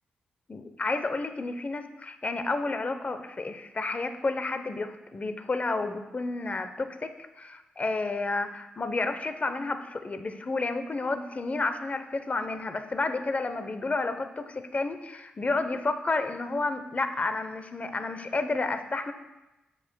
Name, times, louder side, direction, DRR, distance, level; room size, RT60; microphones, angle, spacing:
voice 1, 0.5-7.1 7.4-19.1, left 3 dB, 40° left, 8 dB, 0.8 m, -31 dB
13.5 x 4.9 x 2.3 m, 1.0 s
supercardioid pair, 45°, 4 cm